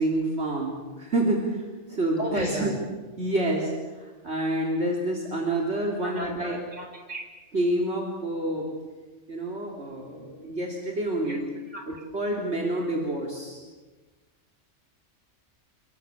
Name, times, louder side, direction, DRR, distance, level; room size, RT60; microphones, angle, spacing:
voice 1, 0.0-1.6 1.9-2.8 3.2-6.6 7.5-8.7 9.3-11.5 11.9-13.6, right 1 dB, 60° right, -1 dB, 3.5 m, -28 dB
voice 2, 2.2-2.8 6.0-7.2 11.3-11.4 11.7-11.8, right 1 dB, 35° right, 2 dB, 5.3 m, -34 dB
27.0 x 22.0 x 7.2 m, 1.3 s
omnidirectional pair, 1.3 m